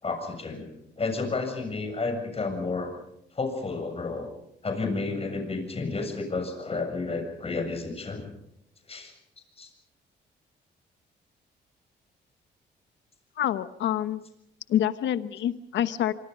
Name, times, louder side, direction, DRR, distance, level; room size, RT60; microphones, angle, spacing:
voice 1, 0.0-2.9 3.3-4.3 4.6-8.3 8.9-9.1 9.6-9.7, left 3 dB, 30° left, 5 dB, 7.3 m, -31 dB
voice 2, 13.4-14.2 14.7-16.1, left 11 dB, 80° left, 13 dB, 1.2 m, -27 dB
26.0 x 24.5 x 5.4 m, 0.78 s
cardioid pair, 100°, 19 cm